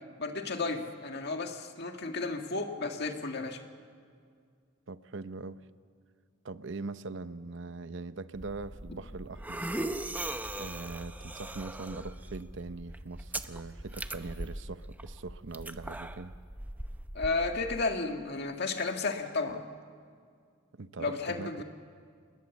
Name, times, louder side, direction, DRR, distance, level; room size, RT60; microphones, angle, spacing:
voice 1, 0.2-3.6 17.1-19.6 21.0-21.6, left 3 dB, 60° left, 4 dB, 1.9 m, -33 dB
voice 2, 4.9-5.6 6.4-9.6 10.6-16.3 20.7-21.6, right 3 dB, 70° right, 13 dB, 0.8 m, -41 dB
sound 1, 8.3-17.8, right 1 dB, 10° right, 0.7 m, -40 dB
27.5 x 20.0 x 7.2 m, 2.2 s
head